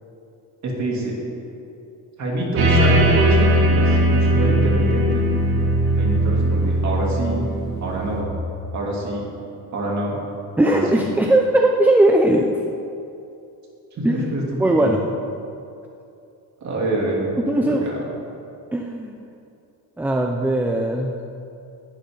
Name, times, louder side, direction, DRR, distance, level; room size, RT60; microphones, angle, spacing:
voice 1, 0.6-1.1 2.2-5.2 6.0-7.5 7.8-8.3 8.7-9.2 9.7-10.1 10.6-11.0 14.1-14.4 14.8-14.9 16.6-17.3 17.7-18.0, right 1 dB, 50° right, -3 dB, 3.1 m, -25 dB
sound 1, 2.6-8.2, right 1 dB, 75° right, 2.3 m, -19 dB
voice 2, 10.6-12.5 14.0-15.0 17.4-17.9 18.7-19.2 20.0-21.2, right 1 dB, 5° right, 2 dB, 0.5 m, -19 dB
17.5 x 10.5 x 3.9 m, 2.7 s
cardioid pair, 160°, 37 cm